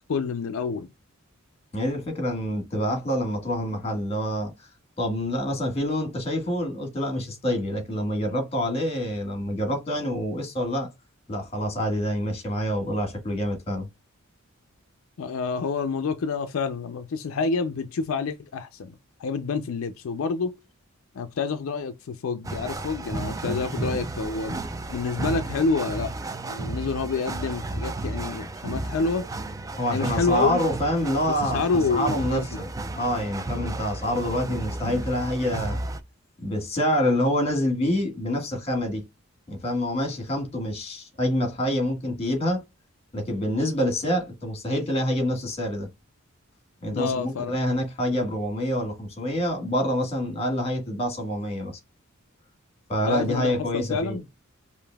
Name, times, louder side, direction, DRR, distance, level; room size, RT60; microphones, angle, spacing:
voice 1, 0.1-0.9 15.2-20.6 21.1-24.6 24.9-26.1 26.5-29.3 29.9-30.6 31.3-32.6 46.9-47.6 53.1-54.2, left 4 dB, 75° left, 0.4 m, -28 dB
voice 2, 1.7-4.7 5.0-10.9 11.3-13.9 23.5-23.9 29.8-32.7 32.9-35.8 36.4-39.0 39.5-42.6 43.1-45.9 46.8-51.8 52.9-54.2, equal, 30° left, 1.5 m, -27 dB
sound 1, 22.4-36.0, right 2 dB, 15° right, 0.3 m, -33 dB
5.1 x 2.6 x 2.2 m
head